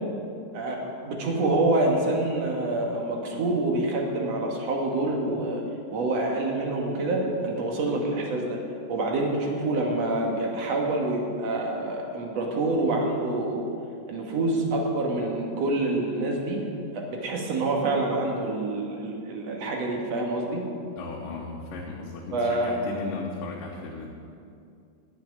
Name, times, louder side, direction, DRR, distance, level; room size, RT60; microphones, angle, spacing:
voice 1, 1.0-5.6 5.9-8.6 8.9-13.6 14.1-16.6 16.9-20.7 22.3-22.8, right 2 dB, 55° right, 0 dB, 2.6 m, -26 dB
voice 2, 21.0-24.1, left 3 dB, 90° left, -2 dB, 2.7 m, -36 dB
10.5 x 7.7 x 9.6 m, 2.5 s
omnidirectional pair, 3.7 m